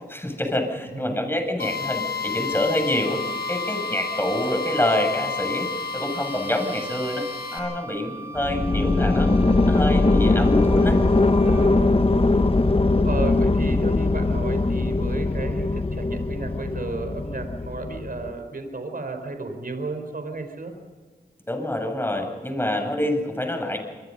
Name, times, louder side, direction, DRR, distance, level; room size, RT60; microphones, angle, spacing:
voice 1, 0.1-3.2 3.5-5.7 5.9-7.2 7.5-9.3 9.7-11.0 21.5-23.8, left 1 dB, 15° left, 4 dB, 7.8 m, -26 dB
voice 2, 0.9-1.2 11.4-12.4 12.9-20.7, right 3 dB, 60° right, 6 dB, 4.8 m, -33 dB
Drill, 1.6-7.6, left 5 dB, 65° left, 7.8 m, -31 dB
Wind instrument woodwind instrument, 3.0-11.7, right 4 dB, 15° right, 1.7 m, -40 dB
sound 1, 8.4-18.3, left 2 dB, 35° left, 1.3 m, -21 dB
26.0 x 23.5 x 5.6 m, 1.4 s
cardioid pair, 50°, 17 cm